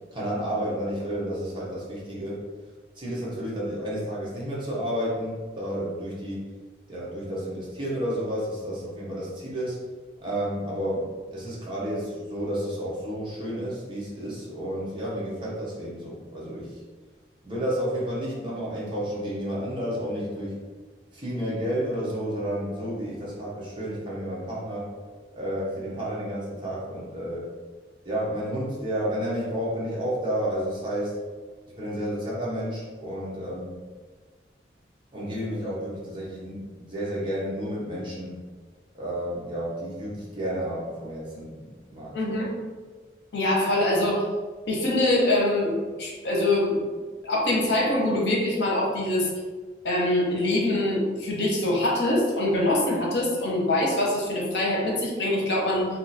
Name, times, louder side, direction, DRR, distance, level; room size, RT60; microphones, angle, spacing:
voice 1, 0.1-2.4 2.9-6.5 6.9-9.8 10.2-16.7 17.4-20.6 21.1-24.9 25.3-27.5 28.0-31.1 31.8-33.7 35.1-38.4 38.9-42.1, equal, 25° right, -6 dB, 0.9 m, -31 dB
voice 2, 42.1-42.6 43.3-44.2 44.7-46.9 47.2-49.3 49.8-55.9, left 1 dB, 80° left, -2 dB, 0.8 m, -24 dB
2.8 x 2.5 x 4.1 m, 1.4 s
head